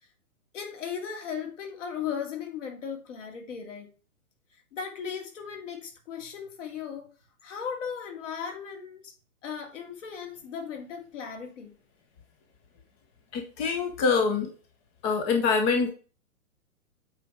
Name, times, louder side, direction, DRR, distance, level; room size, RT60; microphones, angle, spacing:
voice 1, 0.5-3.9 4.7-7.1 7.4-9.1 9.4-11.7, left 7 dB, 55° left, 2.4 m, -37 dB
voice 2, 13.3-14.5 15.0-15.9, left 5 dB, 15° left, 0.6 m, -25 dB
8.2 x 3.6 x 4.6 m
figure-of-eight pair, 125°, 44 cm